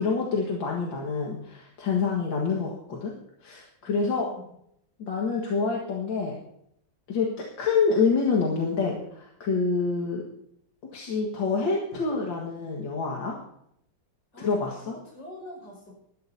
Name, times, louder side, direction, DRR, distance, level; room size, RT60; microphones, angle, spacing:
voice 1, 0.0-3.1 3.4-4.3 5.0-6.4 7.1-10.2 10.9-13.4 14.4-14.9, left 4 dB, 90° left, -1 dB, 2.4 m, -27 dB
voice 2, 3.9-4.5 14.3-15.9, equal, 70° left, -1 dB, 6.5 m, -44 dB
20.0 x 13.0 x 2.8 m, 0.74 s
omnidirectional pair, 2.0 m